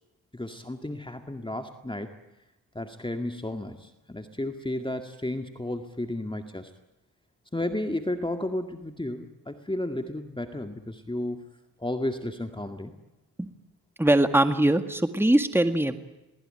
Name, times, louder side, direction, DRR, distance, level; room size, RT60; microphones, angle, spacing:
voice 1, 0.3-2.1 2.8-6.7 7.5-11.5 11.8-12.9, left 1 dB, 10° left, 6 dB, 2.1 m, -33 dB
voice 2, 14.0-16.0, right 1 dB, 5° right, 8 dB, 1.9 m, -22 dB
27.5 x 20.0 x 9.0 m, 0.99 s
cardioid pair, 70°, 41 cm